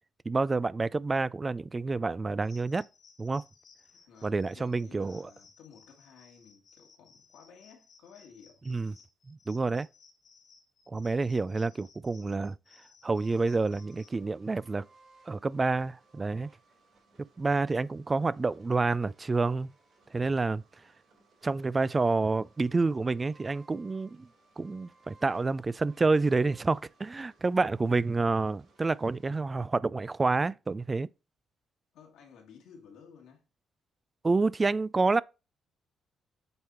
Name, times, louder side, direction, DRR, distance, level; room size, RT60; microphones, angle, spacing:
voice 1, 0.3-2.8 3.2-3.4 4.2-5.3 8.7-8.9 9.3-9.9 10.9-12.5 13.0-14.8 15.3-16.5 17.4-19.7 20.1-20.6 21.4-24.3 24.6-31.1 34.2-35.2, right 3 dB, 25° right, 0.3 m, -28 dB
sound 1, 2.4-14.2, left 5 dB, 60° left, 1.6 m, -60 dB
voice 2, 3.9-8.6 31.9-33.4, left 6 dB, 85° left, 1.8 m, -55 dB
sound 2, 13.1-29.3, right 3 dB, 50° right, 4.0 m, -62 dB
8.0 x 3.6 x 4.3 m
cardioid pair, 90°, 0 cm